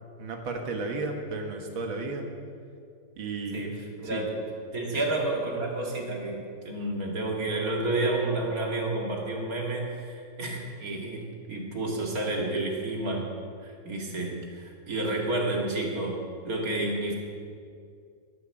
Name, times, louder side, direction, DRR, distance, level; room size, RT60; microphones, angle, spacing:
voice 1, 0.2-2.3 3.2-3.7 4.0-4.2, right 3 dB, 85° right, 3 dB, 2.4 m, -33 dB
voice 2, 3.5-4.4 4.7-13.3 13.6-17.1, right 2 dB, 45° right, 0 dB, 2.5 m, -30 dB
14.5 x 9.4 x 7.2 m, 2.3 s
omnidirectional pair, 2.1 m